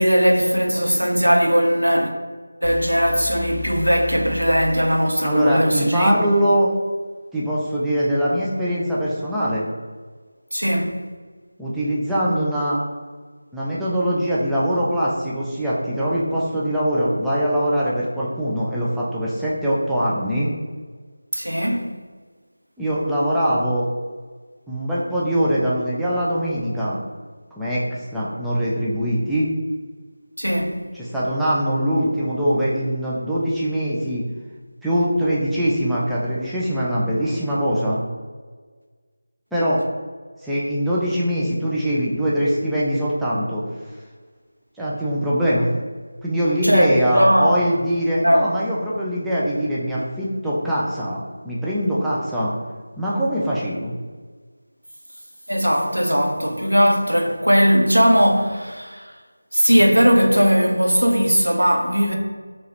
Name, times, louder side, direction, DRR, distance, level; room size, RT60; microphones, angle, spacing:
voice 1, 0.0-2.1 2.6-6.1 10.5-11.0 21.3-21.9 30.4-30.8 46.6-47.5 48.2-48.5 55.5-59.1 59.5-62.1, equal, 90° right, 0.9 m, -18 dB
sound 1, 2.6-5.5, left 2 dB, 60° left, 0.4 m, -34 dB
voice 2, 5.2-6.7 7.3-9.6 11.6-12.8 13.5-20.5 22.8-23.9 24.7-27.0 27.6-29.5 30.9-34.3 34.8-38.0 39.5-39.8 40.4-43.6 44.8-45.7 46.2-52.5 53.0-53.9, equal, ahead, 0.4 m, -22 dB
4.6 x 3.0 x 3.1 m
figure-of-eight pair, 165°, 0 cm